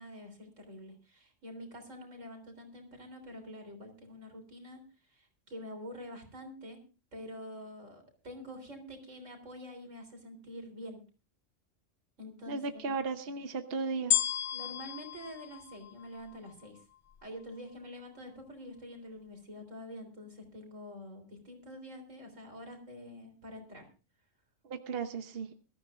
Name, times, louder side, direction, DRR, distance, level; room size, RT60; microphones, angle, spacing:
voice 1, 0.0-4.8 5.1-6.8 7.1-11.0 12.2-13.0 14.5-16.8 17.2-23.8, equal, 85° right, 5 dB, 4.0 m, -47 dB
voice 2, 12.5-14.1 24.6-25.5, right 4 dB, 55° right, 7 dB, 1.1 m, -35 dB
sound 1, 14.1-16.5 17.1-17.2, left 10 dB, 50° left, 1.2 m, -33 dB
22.0 x 13.5 x 2.5 m, 0.34 s
omnidirectional pair, 1.3 m